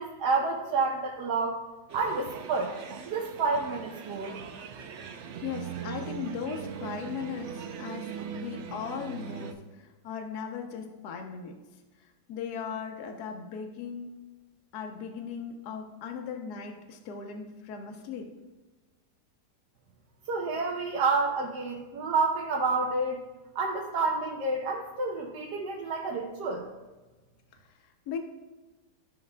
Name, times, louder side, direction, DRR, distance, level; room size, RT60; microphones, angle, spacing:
voice 1, 0.0-1.7 1.9-2.7 3.0-4.3 20.3-23.2 23.5-26.7, right 3 dB, 75° right, -2 dB, 1.4 m, -29 dB
sound 1, 1.9-9.5, right 7 dB, 90° right, 0.6 m, -40 dB
voice 2, 5.4-11.6 12.0-14.2 14.7-18.3 27.6-28.2, left 6 dB, 70° left, 3 dB, 1.2 m, -38 dB
13.5 x 5.7 x 2.2 m, 1.2 s
omnidirectional pair, 1.9 m